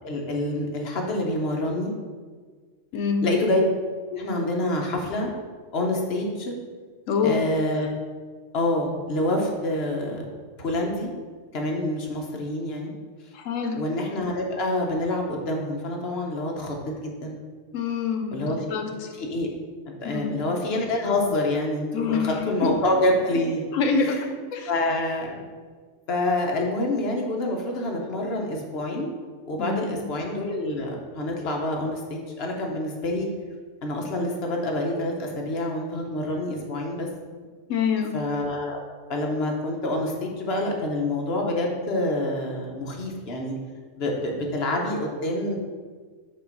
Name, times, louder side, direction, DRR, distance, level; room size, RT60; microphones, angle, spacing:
voice 1, 0.0-1.9 3.2-3.6 4.1-5.3 5.7-6.6 7.2-7.9 8.5-10.3 10.6-11.1 11.5-12.9 13.8-17.4 18.3-18.6 19.2-19.5 20.0-23.6 24.0-24.2 24.7-25.4 26.1-29.2 29.5-33.3 33.8-37.1 38.1-38.8 39.1-43.5 44.0-45.6, left 1 dB, 55° left, 1 dB, 1.2 m, -27 dB
voice 2, 2.9-3.3 7.1-7.4 13.3-13.8 17.7-19.1 20.0-20.4 21.9-22.7 23.7-24.2 24.5-24.7 29.6-30.0 37.7-38.1, left 5 dB, 85° left, 5 dB, 1.1 m, -26 dB
5.4 x 3.9 x 5.4 m, 1.5 s
omnidirectional pair, 1.3 m